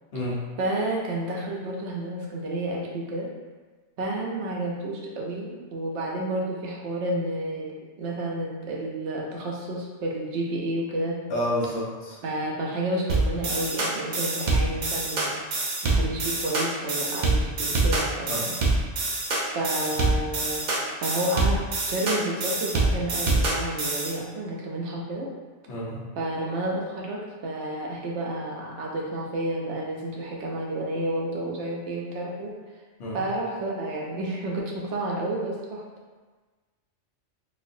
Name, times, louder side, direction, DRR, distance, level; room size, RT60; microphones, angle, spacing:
voice 1, 0.6-3.3 4.0-7.7 8.0-11.2 12.2-18.6 19.5-20.6 21.0-21.6 21.9-25.3 26.2-32.5 33.1-35.8, right 1 dB, 75° right, -2 dB, 1.0 m, -30 dB
voice 2, 11.3-12.2 18.3-18.4 25.7-26.0 33.0-33.2, equal, 70° left, -5 dB, 1.1 m, -29 dB
sound 1, 13.1-24.1, right 2 dB, 50° right, 0.6 m, -25 dB
4.1 x 2.5 x 2.6 m, 1.3 s
omnidirectional pair, 1.2 m